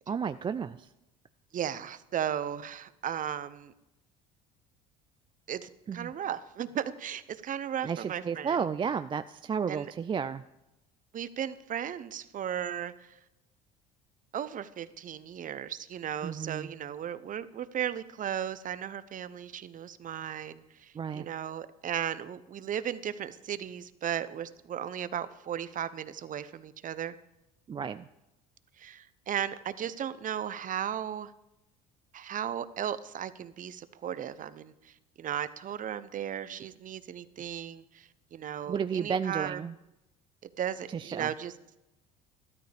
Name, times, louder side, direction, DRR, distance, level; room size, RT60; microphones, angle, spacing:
voice 1, 0.1-0.9 5.9-6.1 7.8-10.4 16.2-16.7 20.9-21.3 27.7-28.1 38.7-39.7 40.9-41.3, right 6 dB, 25° right, 12 dB, 0.4 m, -32 dB
voice 2, 1.5-3.7 5.5-8.6 9.7-9.9 11.1-13.1 14.3-27.1 28.8-31.3 32.1-39.6 40.6-41.5, right 9 dB, 40° right, 15 dB, 0.8 m, -36 dB
13.0 x 13.0 x 3.5 m, 0.93 s
hypercardioid pair, 80°, 20 cm